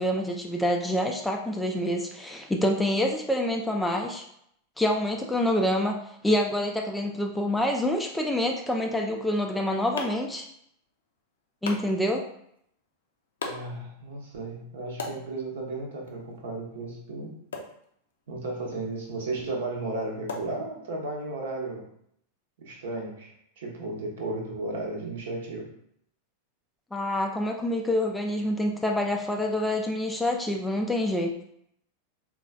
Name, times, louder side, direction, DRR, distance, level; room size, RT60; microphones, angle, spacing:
voice 1, 0.0-4.3 4.8-10.5 11.6-12.2 26.9-31.3, left 1 dB, 5° left, 1 dB, 0.3 m, -27 dB
sound 1, 9.3-21.2, left 3 dB, 65° left, 0.5 m, -43 dB
voice 2, 13.4-17.4 18.3-21.9 22.6-25.7, right 2 dB, 60° right, 0 dB, 0.8 m, -34 dB
3.9 x 2.3 x 2.3 m, 0.71 s
figure-of-eight pair, 90°, 0 cm